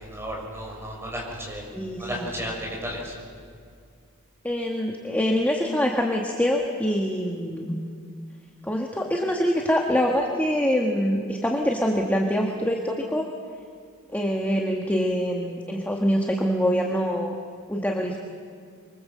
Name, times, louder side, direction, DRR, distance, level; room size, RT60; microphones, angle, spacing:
voice 1, 0.0-1.6 2.0-3.1, equal, 10° right, -3 dB, 6.7 m, -33 dB
voice 2, 1.7-2.3 4.4-7.8 8.6-13.3 14.1-17.3 17.7-18.2, equal, 5° left, 0 dB, 1.5 m, -25 dB
26.0 x 24.0 x 7.6 m, 2.2 s
head